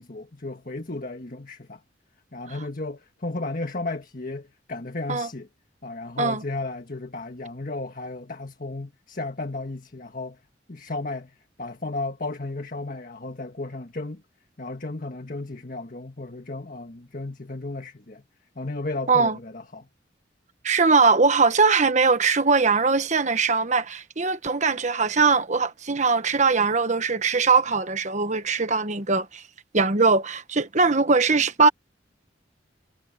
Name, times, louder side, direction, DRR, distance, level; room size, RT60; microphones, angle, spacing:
voice 1, 0.0-1.8 2.3-5.5 5.8-10.4 10.7-14.2 14.6-18.2 18.5-19.9, left 2 dB, 45° left, 1.6 m, -34 dB
voice 2, 20.6-29.4 29.7-31.7, right 4 dB, 40° right, 1.2 m, -21 dB
head